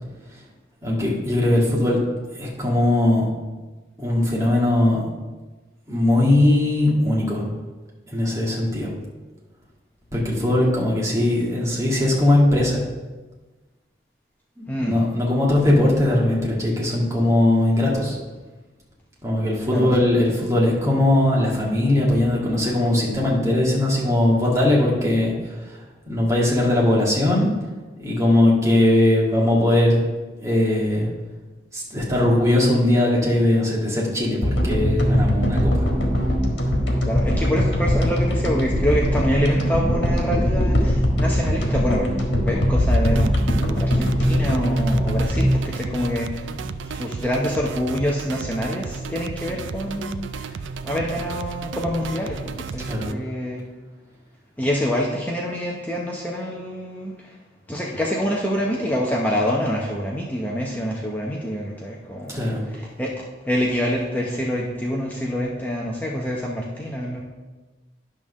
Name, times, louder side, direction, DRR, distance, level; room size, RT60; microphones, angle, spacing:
voice 1, 0.8-2.0 2.3-3.3 4.0-5.1 5.9-7.5 8.1-8.9 10.1-12.8 14.6-18.2 19.2-25.8 26.1-27.5 28.0-30.0 30.4-31.1 31.7-35.9 52.8-53.2 62.3-62.7, left 1 dB, 15° right, -4 dB, 1.7 m, -20 dB
sound 1, 34.4-46.8, equal, 70° left, 1.5 m, -21 dB
voice 2, 37.0-46.6 46.8-53.6 54.6-57.4 57.7-67.2, equal, 10° left, -3 dB, 0.7 m, -26 dB
sound 2, 42.8-53.1, right 5 dB, 90° right, 0.4 m, -34 dB
10.5 x 3.7 x 6.3 m, 1.2 s
head